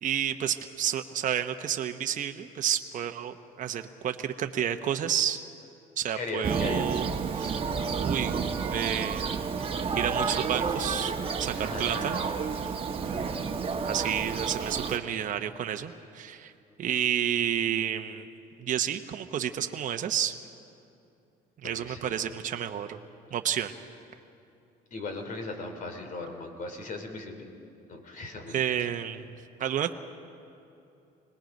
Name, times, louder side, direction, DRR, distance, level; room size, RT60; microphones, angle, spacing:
voice 1, 0.0-5.4 6.0-7.0 7.3-7.6 8.0-8.4 8.7-9.3 10.0-11.1 11.4-12.2 13.0-13.3 13.8-16.5 16.8-18.2 18.6-20.3 21.6-23.0 23.3-23.7 28.5-29.3 29.6-29.9, right 9 dB, 50° right, 6 dB, 0.9 m, -30 dB
voice 2, 6.1-7.0 11.5-12.3 21.6-22.2 24.9-27.4 27.9-28.6, left 3 dB, 55° left, 5 dB, 3.0 m, -38 dB
Thunder, 6.4-15.0, right 5 dB, 35° right, 1.3 m, -30 dB
25.5 x 19.5 x 5.3 m, 2.7 s
cardioid pair, 110°, 17 cm